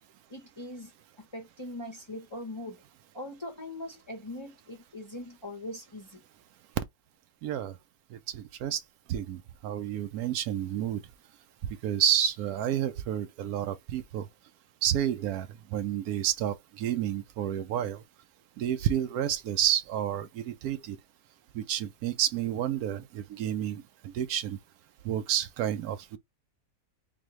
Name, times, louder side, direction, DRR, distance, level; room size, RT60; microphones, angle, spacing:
voice 1, 0.3-0.9 1.2-2.8 3.1-6.2, left 1 dB, 25° left, 0.6 m, -41 dB
voice 2, 7.4-7.7 8.1-8.8 9.1-11.0 11.8-14.3 14.8-18.0 18.6-21.0 21.5-24.6 25.0-26.2, right 10 dB, 85° right, 1.1 m, -30 dB
4.0 x 2.8 x 3.0 m
omnidirectional pair, 1.5 m